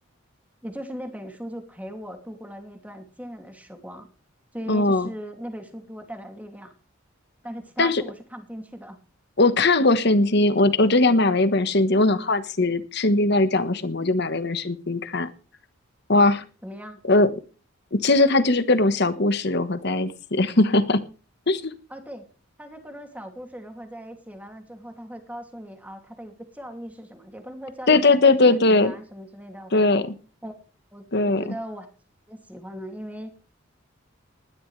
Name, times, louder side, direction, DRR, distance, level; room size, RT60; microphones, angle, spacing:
voice 1, 0.6-4.1 4.5-6.7 7.4-9.0 16.6-17.0 21.9-22.3 22.6-29.9 30.4-30.6 30.9-31.9 32.3-33.3, equal, 5° right, 4 dB, 2.5 m, -38 dB
voice 2, 4.7-5.1 7.8-8.0 9.4-15.3 16.1-16.4 17.1-17.3 17.9-21.0 21.5-21.7 27.9-28.9 29.7-30.0 31.1-31.4, left 2 dB, 55° left, 12 dB, 1.3 m, -20 dB
19.5 x 12.0 x 3.3 m, 0.36 s
head